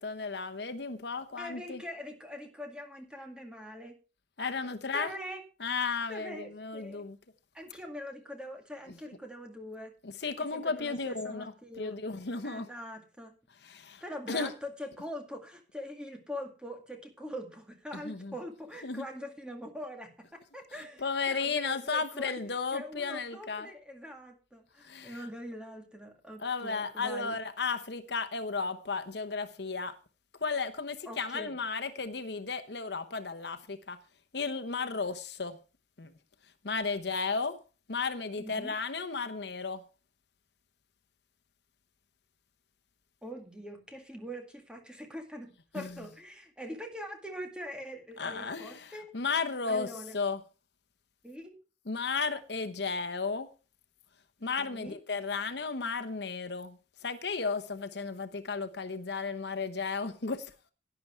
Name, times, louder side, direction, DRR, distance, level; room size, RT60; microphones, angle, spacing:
voice 1, 0.0-1.8 4.4-5.1 5.6-7.2 10.0-11.5 11.8-12.7 13.6-14.0 14.3-14.5 17.9-18.3 18.8-19.1 21.0-23.7 24.8-25.2 26.4-30.0 30.4-34.0 34.3-35.6 36.0-36.1 36.6-37.6 37.9-39.8 45.7-46.0 48.2-50.4 51.9-53.5 54.4-56.8 57.0-60.5, left 4 dB, 65° left, 0.9 m, -34 dB
voice 2, 1.4-4.0 4.9-5.4 6.1-7.1 7.5-9.9 10.5-12.0 12.4-13.4 14.0-27.4 31.1-31.6 38.4-38.8 43.2-49.2 49.7-50.2 51.2-51.6 54.6-55.0, equal, 5° right, 2.1 m, -43 dB
11.5 x 10.5 x 4.5 m
head